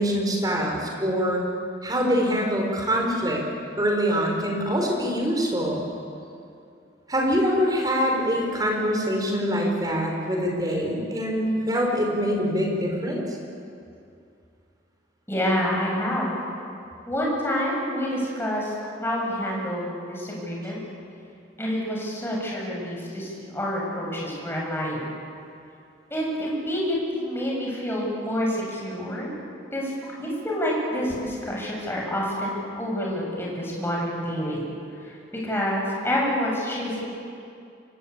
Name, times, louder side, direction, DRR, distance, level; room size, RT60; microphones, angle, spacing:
voice 1, 0.0-1.4 1.8-3.4 3.8-5.8 7.1-13.2, equal, 20° right, 0 dB, 5.6 m, -24 dB
voice 2, 15.3-16.3 17.1-18.7 19.0-20.8 21.6-25.1 26.1-29.3 29.7-29.9 30.2-34.7 35.0-35.2 35.4-37.0, equal, 15° left, -3 dB, 7.8 m, -28 dB
28.0 x 23.0 x 8.7 m, 2.5 s
head